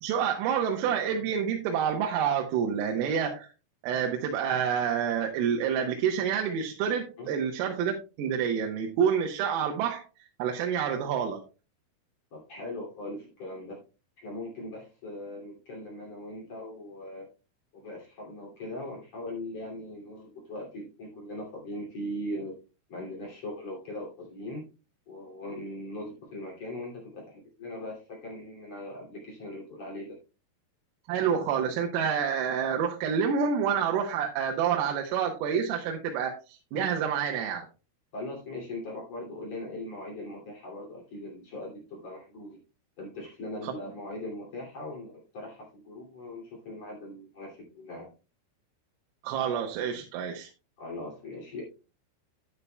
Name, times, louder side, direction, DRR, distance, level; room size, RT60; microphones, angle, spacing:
voice 1, 0.0-3.5 3.8-10.0 10.4-11.4 31.1-37.7 43.6-43.7 49.2-50.5, right 7 dB, 85° right, 2 dB, 3.7 m, -28 dB
voice 2, 12.3-13.8 14.2-17.3 17.7-22.5 22.9-24.6 25.1-30.2 38.1-42.6 43.0-48.1 50.8-51.6, left 1 dB, 40° left, -2 dB, 3.2 m, -40 dB
11.0 x 9.9 x 2.3 m, 0.31 s
omnidirectional pair, 5.8 m